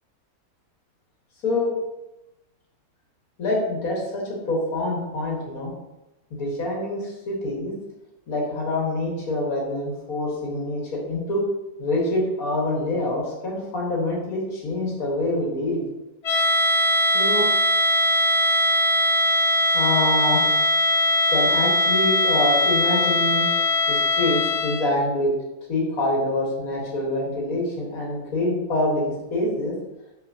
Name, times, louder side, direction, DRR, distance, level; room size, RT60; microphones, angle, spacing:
voice 1, 3.4-4.2 4.5-5.7 6.3-7.7 8.3-11.4 11.8-15.8 17.1-17.5 19.7-20.5 21.3-23.5 23.9-25.3 25.7-29.8, left 1 dB, 75° left, -2 dB, 2.1 m, -25 dB
sound 1, 16.2-25.0, left 1 dB, 55° left, 1.1 m, -20 dB
6.5 x 5.9 x 2.8 m, 0.96 s
omnidirectional pair, 1.5 m